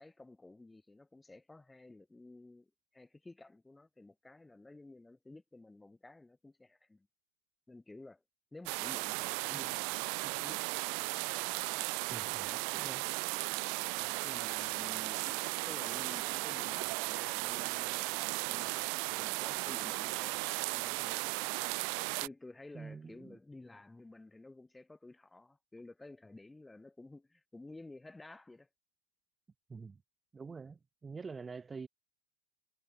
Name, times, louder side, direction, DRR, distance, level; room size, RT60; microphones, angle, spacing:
voice 1, 0.0-7.1 7.7-8.2 8.5-10.6 12.4-12.6 13.9-15.4 15.6-21.5 22.2-28.7, left 2 dB, 5° left, 1.9 m, -53 dB
sound 1, 8.7-22.3, right 40 dB or more, 45° right, 1.2 m, -36 dB
voice 2, 12.1-13.0 22.7-23.4 29.7-30.0 30.3-31.9, right 4 dB, 15° right, 1.2 m, -46 dB
figure-of-eight pair, 90°, 0 cm